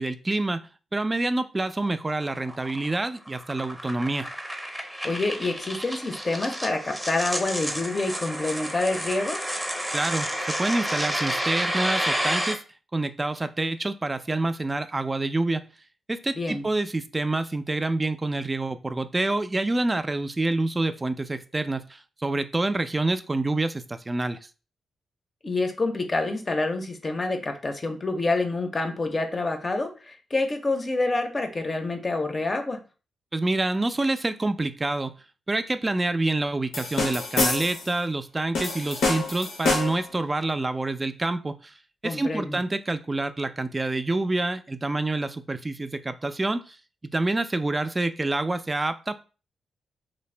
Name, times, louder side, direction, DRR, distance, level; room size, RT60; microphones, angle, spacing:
voice 1, 0.0-4.3 9.9-12.6 12.9-15.6 16.1-24.4 33.3-35.1 35.5-41.7 42.0-46.8 47.1-49.2, right 2 dB, 30° right, 11 dB, 0.3 m, -27 dB
sound 1, 1.8-12.5, equal, 5° right, 0.7 m, -30 dB
voice 2, 5.0-9.4 16.4-16.7 25.4-32.8 42.0-42.6, left 2 dB, 40° left, 5 dB, 0.5 m, -27 dB
sound 2, 36.7-37.9 38.5-40.1, left 3 dB, 85° left, 0.7 m, -26 dB
2.5 x 2.0 x 3.2 m, 0.34 s
supercardioid pair, 50°, 0 cm